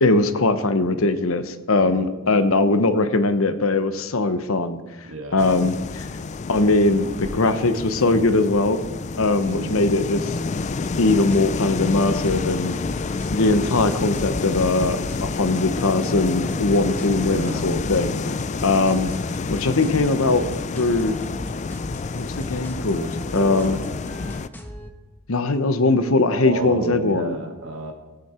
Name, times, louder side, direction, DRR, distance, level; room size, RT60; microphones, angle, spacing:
voice 1, 0.0-4.8 5.3-6.1 6.5-8.8 9.2-10.4 11.0-12.8 13.3-18.1 18.6-19.1 19.5-20.5 20.7-21.2 22.1-23.8 25.3-27.4, left 2 dB, 65° left, 11 dB, 0.9 m, -20 dB
voice 2, 1.8-2.1 5.1-5.4 9.4-9.8 17.1-17.7 23.3-23.8 26.3-27.9, right 1 dB, 60° right, 2 dB, 2.2 m, -31 dB
sound 1, 5.4-24.5, left 4 dB, 30° left, 0.3 m, -29 dB
sound 2, 10.5-24.9, equal, 10° left, 1.0 m, -39 dB
17.0 x 9.6 x 4.4 m, 1.2 s
head